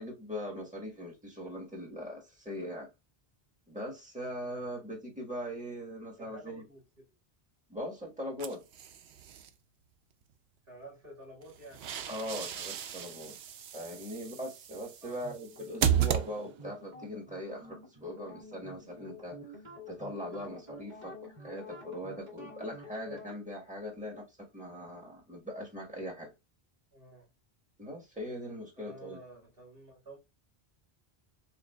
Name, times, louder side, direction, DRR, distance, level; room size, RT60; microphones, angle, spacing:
voice 1, 0.0-2.9 3.7-6.6 7.7-8.6 12.1-13.4 13.7-19.6 19.9-26.3 27.8-29.2, equal, 5° right, 1.4 m, -41 dB
voice 2, 4.4-4.7 6.2-7.0 10.7-12.1 15.0-15.4 26.9-27.3 28.8-30.2, right 1 dB, 65° right, 2.4 m, -51 dB
sound 1, 8.4-9.5 11.4-16.8, right 9 dB, 80° right, 0.8 m, -34 dB
sound 2, 15.2-23.3, left 1 dB, 45° right, 1.8 m, -49 dB
6.9 x 2.5 x 2.3 m
omnidirectional pair, 1.0 m